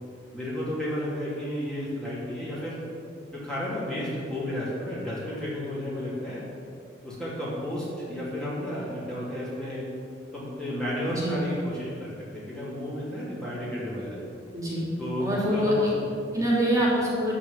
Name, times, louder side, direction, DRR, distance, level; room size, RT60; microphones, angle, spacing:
voice 1, 0.3-2.8 3.3-6.4 7.0-9.9 10.3-14.2 15.0-16.4, left 1 dB, 5° left, -9 dB, 2.8 m, -32 dB
voice 2, 11.1-11.4 14.5-14.9 15.2-15.9 16.3-17.3, equal, 20° right, -6 dB, 2.9 m, -25 dB
13.0 x 4.9 x 8.6 m, 2.4 s
head